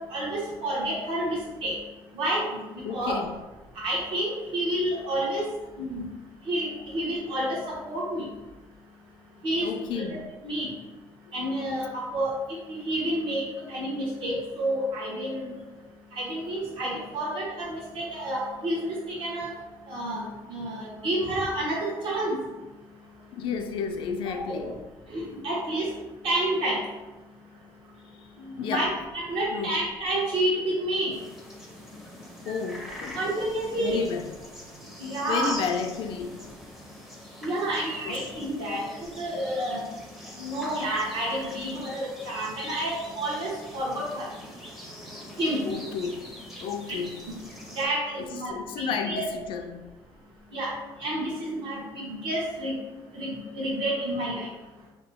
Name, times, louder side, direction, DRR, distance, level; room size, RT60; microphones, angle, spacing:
voice 1, 0.1-1.7 2.1-3.1 3.8-5.4 5.8-6.0 6.5-8.2 9.4-10.7 11.3-12.3 12.7-13.4 13.7-15.5 16.2-18.9 19.2-19.5 19.9-20.2 20.5-22.4 24.3-24.4 25.1-25.9 26.2-26.8 28.6-31.1 33.2-34.0 35.0-35.5 37.4-38.9 39.2-39.8 40.4-44.3 45.4-45.6 47.3-47.4 47.8-48.5 48.8-49.3 50.5-50.7 51.0-52.7 53.1-54.5, right 1 dB, 65° right, -5 dB, 1.1 m, -29 dB
voice 2, 2.8-3.4 9.6-10.3 11.3-11.4 23.3-24.8 27.6-27.7 28.2-28.3 28.6-28.9 29.5-29.8 32.4-33.4 33.8-34.3 35.3-36.5 38.1-38.3 45.7-46.3 46.6-47.2 48.2-49.9, left 6 dB, 70° left, 5 dB, 0.4 m, -32 dB
sound 1, 31.1-47.9, equal, 5° right, 0.5 m, -43 dB
2.8 x 2.2 x 3.3 m, 1.1 s
cardioid pair, 140°, 9 cm